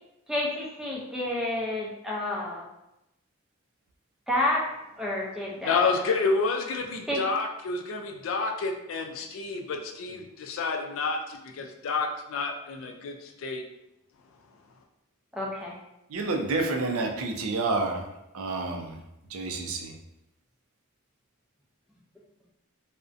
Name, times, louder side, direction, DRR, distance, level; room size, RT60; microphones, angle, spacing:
voice 1, 0.3-2.6 4.3-4.6 5.0-5.9 7.1-7.2 15.3-15.8, left 1 dB, 5° right, -5 dB, 0.4 m, -29 dB
voice 2, 5.6-13.6, left 4 dB, 65° left, 3 dB, 0.3 m, -29 dB
voice 3, 16.1-18.0 18.3-19.0 19.3-19.9, right 3 dB, 80° right, 3 dB, 0.4 m, -29 dB
2.5 x 2.1 x 2.4 m, 0.89 s
head